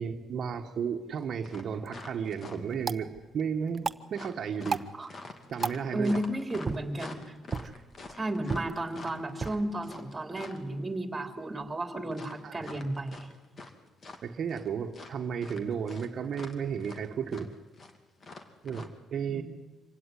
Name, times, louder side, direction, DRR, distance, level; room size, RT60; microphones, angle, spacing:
voice 1, 0.0-4.8 5.5-6.2 12.4-12.8 14.2-17.5 18.6-19.4, right 7 dB, 60° right, 4 dB, 1.3 m, -33 dB
sound 1, 1.2-1.3 1.4-2.8 4.1-10.7 12.1-13.7 14.0-14.7 14.9-18.9, left 3 dB, 45° left, 2.6 m, -45 dB
sound 2, 1.7-11.7, right 5 dB, 35° right, 0.9 m, -40 dB
voice 2, 5.9-7.2 8.2-13.3 19.3-19.4, right 1 dB, 20° right, 6 dB, 3.3 m, -33 dB
25.5 x 16.5 x 9.8 m, 1.2 s
cardioid pair, 90°, 0 cm